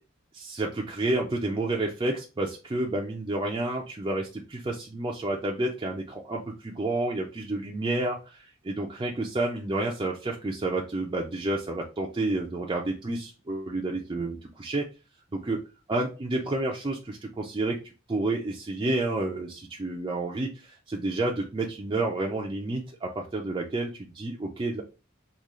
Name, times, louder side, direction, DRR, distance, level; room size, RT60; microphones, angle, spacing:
voice 1, 0.3-14.8 15.3-15.6 15.9-17.8 18.1-24.8, right 2 dB, 25° right, -1 dB, 0.4 m, -30 dB
3.6 x 2.3 x 3.0 m, 0.31 s
head